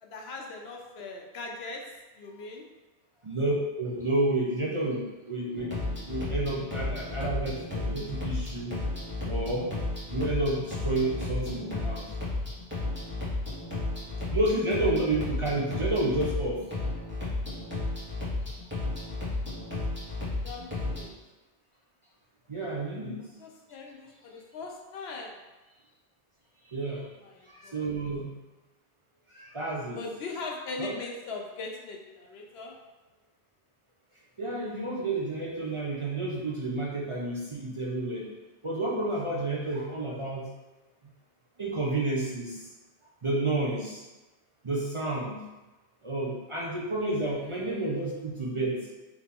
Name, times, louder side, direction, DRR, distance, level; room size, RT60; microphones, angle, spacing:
voice 1, 0.0-2.6 13.8-14.4 20.4-21.2 23.4-25.4 26.9-27.9 29.9-32.8 47.0-48.0, left 3 dB, 75° left, 1 dB, 0.9 m, -41 dB
voice 2, 3.2-8.7 9.2-9.7 10.1-12.1 14.3-16.6 22.5-23.3 26.7-27.0 27.4-28.4 29.3-30.0 30.8-30.9 34.4-38.3 38.6-40.5 41.6-42.7 43.2-44.1 44.6-45.4 46.0-48.9, right 2 dB, 35° right, -5 dB, 0.6 m, -30 dB
sound 1, 5.5-21.0, left 2 dB, 10° right, 1.3 m, -33 dB
4.1 x 2.9 x 3.5 m, 1.1 s
omnidirectional pair, 1.1 m